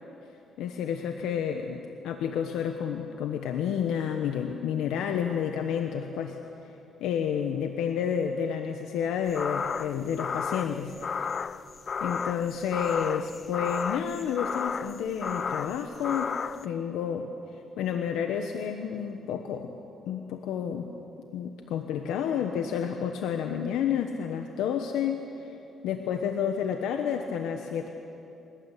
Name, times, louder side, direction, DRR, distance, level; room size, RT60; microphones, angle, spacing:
voice 1, 0.6-6.4 7.0-11.0 12.0-16.4 16.6-17.3 17.8-19.7 20.1-20.9 21.3-25.6 25.8-27.9, left 8 dB, 90° left, 5 dB, 1.2 m, -30 dB
sound 1, 9.3-16.6, left 6 dB, 45° left, 0.5 m, -33 dB
24.0 x 18.5 x 8.5 m, 2.9 s
cardioid pair, 90°, 0 cm